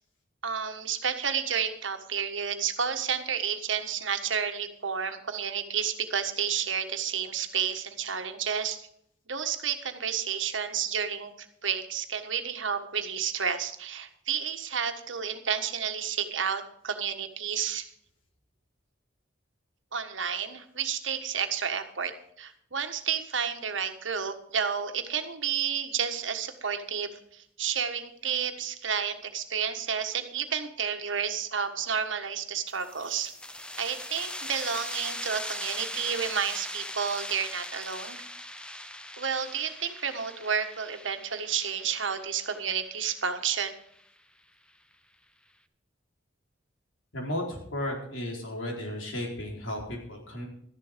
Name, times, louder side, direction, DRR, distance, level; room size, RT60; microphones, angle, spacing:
voice 1, 0.4-8.8 9.3-17.9 19.9-22.1 22.4-33.3 33.8-38.2 39.2-43.7, right 7 dB, 75° right, 7 dB, 1.5 m, -31 dB
sound 1, 32.7-44.0, left 1 dB, 5° left, 0.7 m, -40 dB
voice 2, 47.1-50.5, left 1 dB, 90° left, 0 dB, 4.3 m, -34 dB
13.0 x 11.0 x 5.1 m, 0.69 s
head